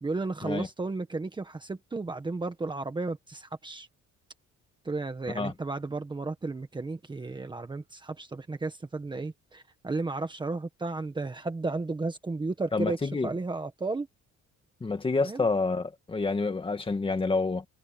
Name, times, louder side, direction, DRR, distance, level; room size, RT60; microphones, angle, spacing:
voice 1, 0.0-3.9 4.8-14.1 15.2-15.4, right 3 dB, 15° right, 1.4 m, -33 dB
voice 2, 12.7-13.3 14.8-17.7, left 3 dB, 15° left, 2.0 m, -28 dB
cardioid pair, 170°, 30 cm